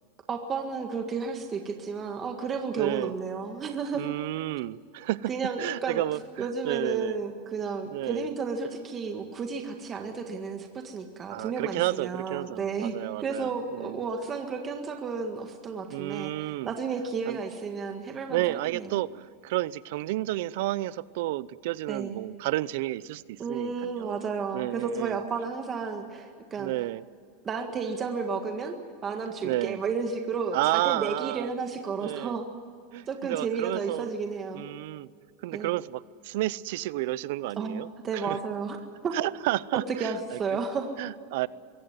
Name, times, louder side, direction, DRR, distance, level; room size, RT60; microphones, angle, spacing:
voice 1, 0.3-4.1 5.3-6.0 6.4-19.0 21.9-22.2 23.4-26.7 27.4-28.7 29.0-32.5 33.1-34.6 35.5-35.7 37.6-38.8 39.0-39.2 39.7-40.9, right 5 dB, 25° right, 4 dB, 1.7 m, -32 dB
voice 2, 2.8-3.1 3.9-5.3 5.6-7.2 7.9-8.3 11.3-14.0 15.9-16.7 17.3-17.4 18.3-24.2 24.5-25.2 26.6-27.0 29.4-29.8 30.5-31.5 32.0-32.4 32.9-34.1 34.5-35.1 35.4-37.9 38.2-38.4 39.1-40.4 41.0-41.5, right 17 dB, 70° right, 20 dB, 0.6 m, -31 dB
23.0 x 17.0 x 9.5 m, 2.3 s
supercardioid pair, 145°, 0 cm